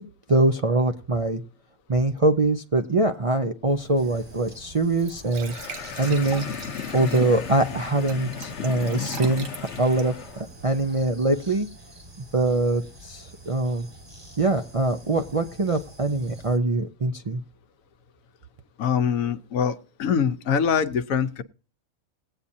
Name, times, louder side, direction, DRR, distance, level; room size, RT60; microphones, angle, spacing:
voice 1, 0.3-1.4 1.9-6.4 6.9-11.7 12.3-13.9 14.4-17.4, right 2 dB, 40° right, 4 dB, 0.5 m, -23 dB
Glass / Trickle dribble / Fill (with liquid), 3.7-11.0, right 5 dB, 70° right, 1.5 m, -44 dB
sound 1, 4.0-16.6, right 1 dB, 20° right, 1.4 m, -47 dB
sound 2, 5.4-10.4, left 6 dB, 60° left, 1.1 m, -34 dB
voice 2, 18.8-21.4, left 7 dB, 75° left, 11 dB, 1.2 m, -24 dB
19.0 x 8.5 x 2.7 m, 0.37 s
omnidirectional pair, 1.4 m